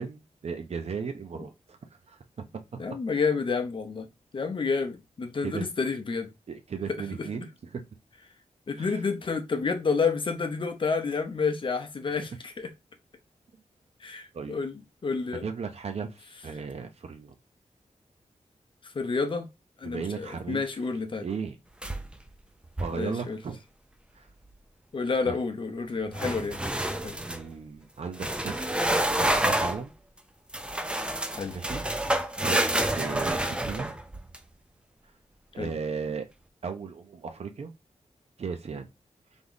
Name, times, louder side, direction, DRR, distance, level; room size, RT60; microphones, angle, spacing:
voice 1, 0.0-1.8 2.1-2.8 5.4-5.6 6.5-7.8 8.8-9.0 14.3-14.6 15.4-17.3 19.8-20.6 21.2-21.6 22.8-23.6 24.2-24.3 25.2-25.4 27.2-29.9 31.5-32.6 32.9-34.0 35.5-36.3 36.6-37.7 38.4-38.9, right 5 dB, 55° right, 0.6 m, -36 dB
voice 2, 2.8-4.1 4.3-6.3 6.9-7.3 8.7-12.7 14.0-15.5 18.8-19.5 19.8-21.3 22.9-23.4 24.9-26.6 27.0-27.2 31.3-31.6 35.6-35.7, left 4 dB, 40° left, 0.7 m, -29 dB
sound 1, 21.8-22.3 22.6-23.0 26.1-27.4 28.1-29.8 30.5-34.4, right 1 dB, 10° right, 0.4 m, -28 dB
3.5 x 3.0 x 3.9 m
wide cardioid pair, 170°, 13 cm